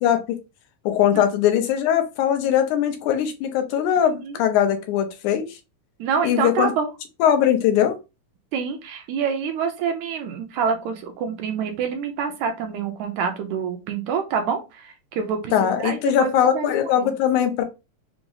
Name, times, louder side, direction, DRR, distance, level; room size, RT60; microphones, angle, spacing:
voice 1, 0.0-0.4 0.9-5.6 6.2-6.7 7.2-8.0 15.5-17.6, left 10 dB, 80° left, 6 dB, 2.0 m, -20 dB
voice 2, 4.0-4.4 6.0-6.9 8.5-15.5 15.8-17.1, right 6 dB, 75° right, 6 dB, 1.8 m, -27 dB
5.9 x 2.0 x 3.8 m, 0.27 s
omnidirectional pair, 3.8 m